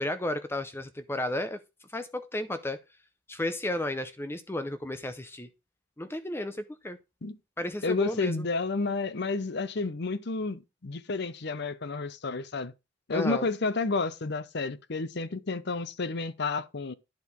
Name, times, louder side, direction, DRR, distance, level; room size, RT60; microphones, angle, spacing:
voice 1, 0.0-1.6 1.9-2.8 3.3-5.5 6.0-7.0 7.6-8.4 13.1-13.5, left 1 dB, 10° left, 0.6 m, -33 dB
voice 2, 7.8-12.7 13.1-16.9, left 3 dB, 60° left, 0.7 m, -31 dB
10.5 x 4.6 x 5.2 m
head